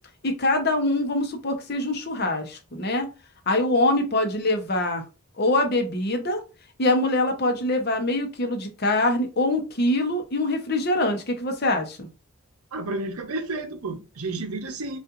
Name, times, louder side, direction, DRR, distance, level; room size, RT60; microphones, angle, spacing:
voice 1, 0.2-3.1 3.5-5.0 5.4-6.4 6.8-12.1, left 2 dB, 45° left, 0.8 m, -24 dB
voice 2, 12.7-15.0, right 2 dB, 80° right, 0.7 m, -31 dB
5.5 x 2.5 x 2.5 m
head